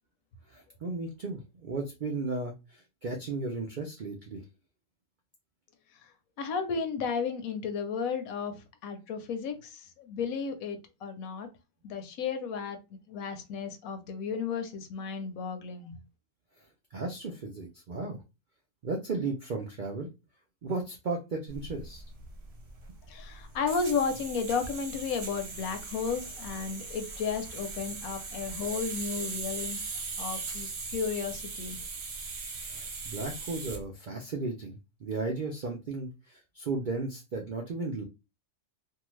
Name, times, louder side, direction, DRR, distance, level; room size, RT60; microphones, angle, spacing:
voice 1, 0.5-4.4 16.9-18.2 18.8-20.1 20.6-22.0 32.7-38.0, right 3 dB, 80° right, 1 dB, 0.4 m, -35 dB
voice 2, 6.4-11.5 11.8-15.9 23.1-31.8, left 5 dB, 75° left, 7 dB, 1.1 m, -33 dB
sound 1, 21.5-33.8, right 4 dB, 55° right, 0.9 m, -39 dB
2.6 x 2.4 x 3.1 m, 0.27 s
omnidirectional pair, 1.5 m